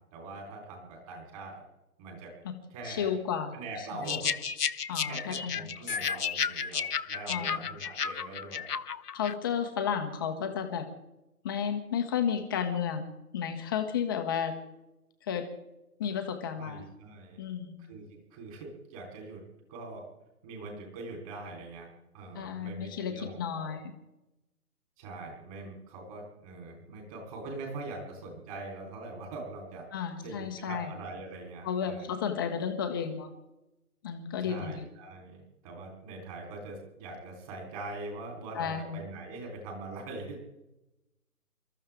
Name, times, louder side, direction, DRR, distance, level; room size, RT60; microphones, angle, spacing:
voice 1, 0.1-1.6 2.0-2.4 2.7-3.1 3.5-4.4 5.0-8.7 16.5-17.5 17.8-19.4 19.7-20.1 20.4-21.9 22.1-23.8 25.0-29.8 30.2-32.1 34.4-40.4, right 2 dB, 25° right, 0 dB, 3.8 m, -42 dB
voice 2, 2.8-4.2 4.9-5.7 7.3-7.6 9.1-10.9 11.4-13.1 13.3-14.5 15.2-15.5 16.0-16.8 17.4-17.8 22.3-23.9 29.9-30.9 31.6-33.3 34.0-34.9 38.5-39.0, left 7 dB, 15° left, 5 dB, 1.0 m, -32 dB
sound 1, 4.1-9.3, left 6 dB, 80° left, 1.0 m, -33 dB
29.0 x 14.0 x 3.6 m, 0.93 s
figure-of-eight pair, 150°, 46 cm